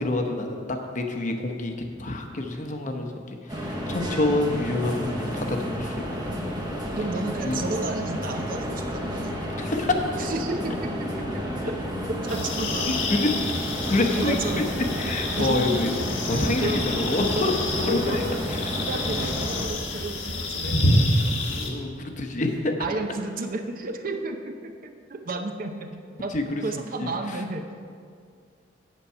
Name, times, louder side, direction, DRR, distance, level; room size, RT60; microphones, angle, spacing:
voice 1, 0.0-6.0 7.4-7.6 9.6-10.3 12.8-13.3 13.9-14.4 15.0-17.5 17.8-18.6 21.6-22.7 26.3-26.6 27.0-27.1, left 2 dB, 40° left, 4 dB, 0.9 m, -27 dB
sound 1, 3.5-19.7, equal, 20° right, 1.0 m, -31 dB
voice 2, 7.0-9.4 10.2-12.9 14.1-14.7 15.4-15.6 16.3-16.9 17.3-18.5 18.8-20.8 22.8-26.4 26.6-27.7, right 2 dB, 50° right, 6 dB, 0.7 m, -32 dB
sound 2, 12.3-21.7, left 1 dB, 75° left, 1.3 m, -28 dB
8.3 x 7.6 x 5.6 m, 2.2 s
head